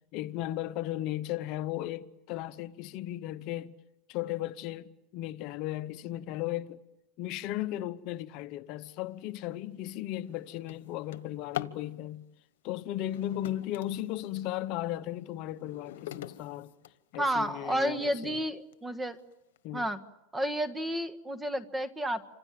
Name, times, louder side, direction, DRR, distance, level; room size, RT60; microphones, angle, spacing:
voice 1, 0.1-3.7 4.1-6.8 7.2-12.3 12.6-16.7 17.1-18.4 19.6-19.8, left 14 dB, 50° left, 1.0 m, -36 dB
Drawer open or close, 9.2-9.4 9.9-11.9 12.9-14.5 15.0-17.5 18.1-18.2 18.7-18.8 19.2-19.6, left 13 dB, 85° left, 1.2 m, -43 dB
voice 2, 17.2-19.2 19.7-20.0 20.3-22.2, equal, 10° right, 1.6 m, -31 dB
29.0 x 26.0 x 7.7 m
supercardioid pair, 140°, 0 cm